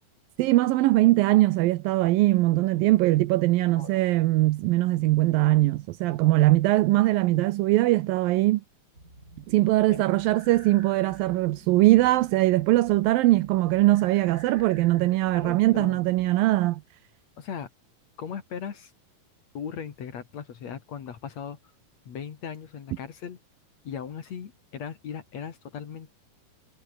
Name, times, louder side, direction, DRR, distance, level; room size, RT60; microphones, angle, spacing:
voice 1, 0.4-8.6 9.5-16.8, right 17 dB, 80° right, 2.5 m, -21 dB
sound 1, 8.9-16.4, right 1 dB, 20° right, 8.0 m, -51 dB
voice 2, 15.3-16.0 17.4-17.7 18.2-18.9 19.5-21.6 22.1-23.4 23.8-26.1, left 7 dB, 50° left, 2.9 m, -38 dB
omnidirectional pair, 4.2 m